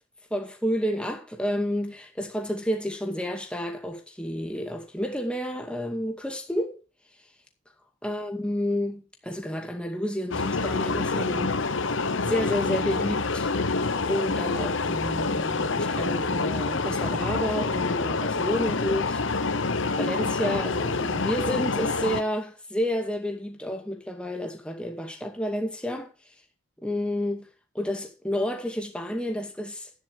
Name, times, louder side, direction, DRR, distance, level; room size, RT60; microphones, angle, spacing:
voice 1, 0.3-6.8 8.0-11.6 12.3-13.5 14.0-19.2 20.0-26.1 26.8-27.5 27.7-29.9, equal, 5° left, 2.2 m, -30 dB
sound 1, 10.3-22.2, left 3 dB, 60° left, 0.9 m, -27 dB
11.5 x 9.6 x 4.8 m
head